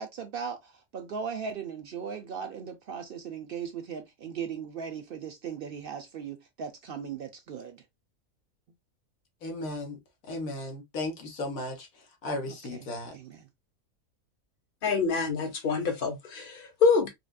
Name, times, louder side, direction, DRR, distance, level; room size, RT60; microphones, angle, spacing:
voice 1, 0.0-7.8 12.5-13.5, right 6 dB, 70° right, 0.5 m, -38 dB
voice 2, 9.4-10.0 10.3-11.9 12.2-13.1, left 2 dB, 75° left, 1.6 m, -35 dB
voice 3, 14.8-17.1, left 4 dB, 40° left, 1.2 m, -26 dB
4.8 x 2.4 x 2.2 m
omnidirectional pair, 1.5 m